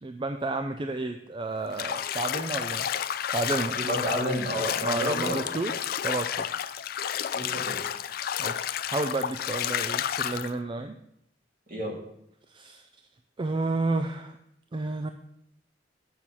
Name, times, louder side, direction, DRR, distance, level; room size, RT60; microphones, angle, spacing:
voice 1, 0.0-2.8 3.3-3.8 4.8-6.4 8.4-11.0 12.5-12.9 13.4-14.4 14.7-15.1, right 2 dB, 25° right, 7 dB, 0.4 m, -31 dB
Bathtub (filling or washing), 1.7-10.5, left 9 dB, 55° left, 0.4 m, -31 dB
voice 2, 3.8-5.6 7.3-7.9 11.7-11.9, equal, 50° right, -2 dB, 2.6 m, -30 dB
7.5 x 6.4 x 5.6 m, 0.77 s
head